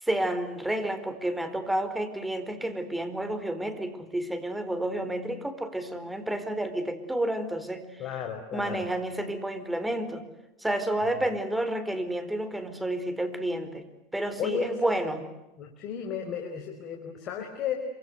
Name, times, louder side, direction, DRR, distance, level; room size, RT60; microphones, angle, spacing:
voice 1, 0.0-8.0 8.5-10.2 10.6-13.8 14.1-15.2, right 1 dB, 5° right, 11 dB, 4.5 m, -30 dB
voice 2, 8.0-8.9 14.4-14.7 15.6-17.8, left 8 dB, 45° left, 4 dB, 4.9 m, -33 dB
27.0 x 25.5 x 8.1 m, 1.0 s
hypercardioid pair, 95°, 0 cm